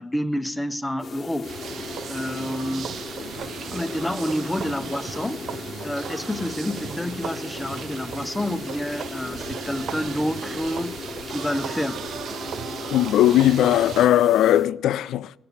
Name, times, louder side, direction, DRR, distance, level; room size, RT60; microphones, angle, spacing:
voice 1, 0.0-1.6 2.1-3.0 3.7-5.5 5.8-10.9 11.3-12.1, left 1 dB, 10° left, 0.7 m, -29 dB
sound 1, 1.0-14.7, left 5 dB, 40° left, 0.9 m, -37 dB
sound 2, 1.4-14.1, right 8 dB, 65° right, 0.4 m, -36 dB
voice 2, 12.9-15.4, left 12 dB, 80° left, 0.4 m, -18 dB
16.5 x 6.8 x 7.1 m
cardioid pair, 90°, 0 cm